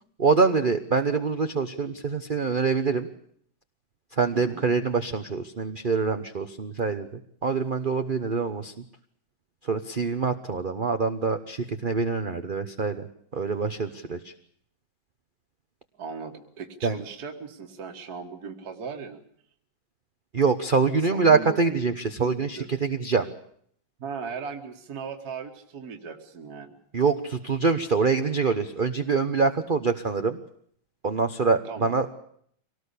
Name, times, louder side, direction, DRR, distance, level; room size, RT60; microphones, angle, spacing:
voice 1, 0.2-3.1 4.2-7.1 7.4-8.7 9.7-13.1 13.3-14.3 16.8-17.0 20.3-23.3 26.9-30.4 31.0-32.1, right 4 dB, 35° right, 8 dB, 0.9 m, -25 dB
voice 2, 4.3-4.6 15.9-19.2 21.0-21.8 22.2-22.7 24.0-26.7 31.6-32.0, right 5 dB, 50° right, 3 dB, 2.2 m, -38 dB
24.5 x 18.5 x 8.4 m, 0.65 s
omnidirectional pair, 2.2 m